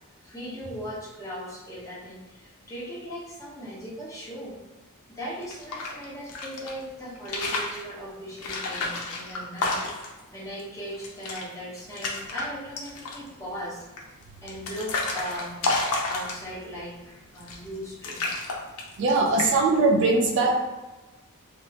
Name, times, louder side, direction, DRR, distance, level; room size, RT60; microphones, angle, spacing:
voice 1, 0.2-4.6 5.1-13.9 14.4-15.6 16.0-18.2 19.2-19.5, equal, 15° left, -7 dB, 0.8 m, -38 dB
sound 1, 5.4-6.7 7.2-7.8 8.4-10.2 10.6-10.7 10.9-11.4 11.8-12.4 12.8-13.3 14.0-16.7 17.4-17.8 18.0-19.1 19.4-19.8, left 3 dB, 85° left, 0.5 m, -30 dB
voice 2, 19.0-20.6, right 3 dB, 55° right, 2 dB, 0.3 m, -21 dB
3.0 x 2.0 x 2.7 m, 1.1 s
head